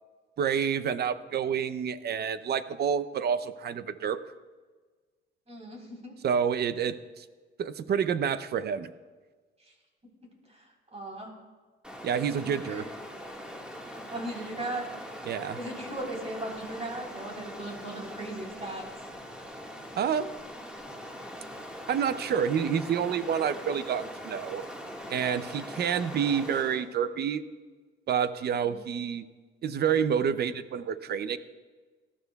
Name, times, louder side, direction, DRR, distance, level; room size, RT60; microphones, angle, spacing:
voice 1, 0.4-4.2 6.2-7.2 7.6-8.9 12.0-12.9 15.3-15.6 20.0-20.4 21.9-24.6 25.1-27.4 28.1-29.2 29.6-31.4, right 7 dB, 55° right, 14 dB, 0.6 m, -28 dB
voice 2, 5.5-6.1 9.6-9.7 10.5-10.7 10.9-11.3 12.4-12.9 14.1-14.9 15.5-18.9 28.6-28.9, right 1 dB, 30° right, -1 dB, 4.0 m, -38 dB
Stream, 11.8-26.9, equal, 5° right, 1.7 m, -42 dB
19.0 x 12.5 x 2.3 m, 1.4 s
cardioid pair, 90°, 20 cm